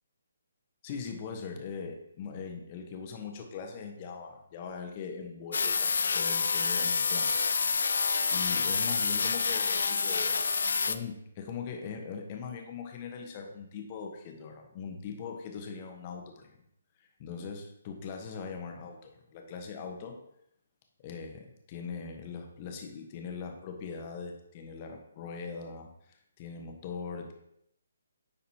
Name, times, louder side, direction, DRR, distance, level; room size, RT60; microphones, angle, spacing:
voice 1, 0.8-7.5 8.3-10.4 10.9-16.5 17.2-20.2 21.0-27.3, left 5 dB, 35° left, 3 dB, 1.0 m, -41 dB
sound 1, 5.5-11.0, left 5 dB, 65° left, 0.4 m, -28 dB
9.7 x 4.1 x 2.9 m, 0.76 s
figure-of-eight pair, 140°, 0 cm